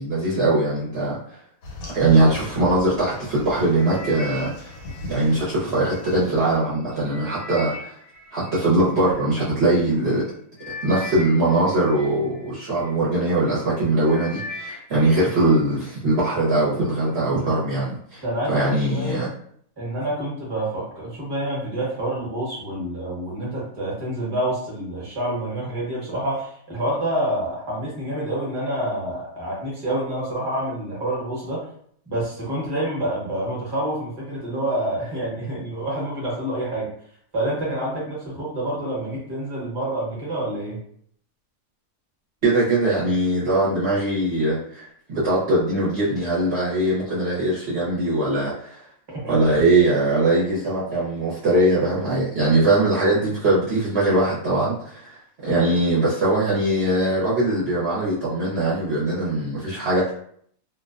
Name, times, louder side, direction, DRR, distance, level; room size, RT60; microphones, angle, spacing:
voice 1, 0.0-1.4 1.9-4.7 5.1-8.0 8.3-10.2 10.8-19.3 42.4-48.8 49.3-60.1, right 2 dB, 55° right, -9 dB, 0.9 m, -21 dB
sound 1, 1.6-6.6, left 1 dB, 75° left, 1.1 m, -38 dB
sound 2, 3.8-6.1 6.6-9.5 10.2-10.3 10.6-13.0 13.5-13.8 14.1-15.6 15.9-16.4 17.0-17.1, left 1 dB, 45° left, 0.7 m, -39 dB
voice 2, 18.2-19.2 19.8-31.7 32.1-36.9 37.3-40.8 49.1-49.4, right 1 dB, 20° right, -5 dB, 0.8 m, -27 dB
2.5 x 2.2 x 2.4 m, 0.64 s
omnidirectional pair, 1.5 m